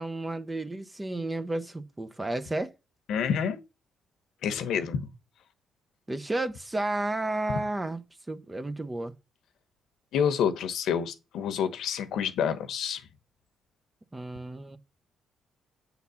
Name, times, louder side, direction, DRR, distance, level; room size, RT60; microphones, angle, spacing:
voice 1, 0.0-2.7 6.1-8.0 8.3-9.1 14.1-14.8, right 2 dB, 15° right, 0.8 m, -32 dB
voice 2, 3.1-3.6 4.4-5.1 10.1-13.0, left 7 dB, 75° left, 1.1 m, -28 dB
8.4 x 4.0 x 7.1 m
cardioid pair, 90°, 0 cm